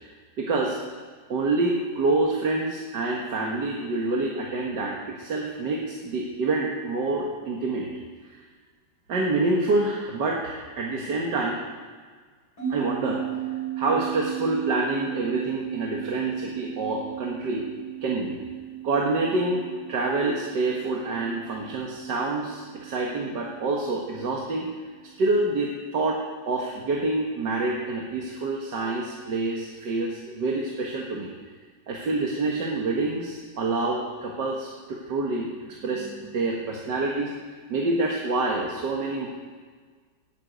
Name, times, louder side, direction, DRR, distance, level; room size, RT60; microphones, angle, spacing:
voice 1, 0.4-0.8 1.3-7.9 8.3-8.4 9.1-11.6 12.7-13.2 13.8-17.7 18.0-18.4 18.8-24.7 25.2-31.3 31.9-37.4 37.7-39.3, right 2 dB, 65° right, -1 dB, 2.1 m, -27 dB
sound 1, 12.6-25.3, right 12 dB, 55° left, 3.7 m, -36 dB
15.0 x 9.1 x 9.2 m, 1.5 s
omnidirectional pair, 2.1 m